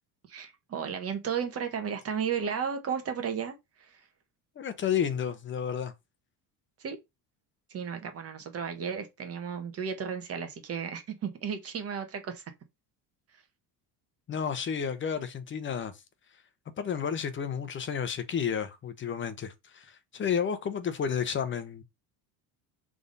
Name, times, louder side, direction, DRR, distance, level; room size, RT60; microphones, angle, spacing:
voice 1, 0.3-4.0 6.8-7.0 7.7-12.4, right 7 dB, 35° right, 1.3 m, -34 dB
voice 2, 4.6-5.9 14.3-15.9 16.8-21.8, left 7 dB, 30° left, 0.9 m, -31 dB
6.8 x 3.6 x 4.0 m
cardioid pair, 150°, 40 cm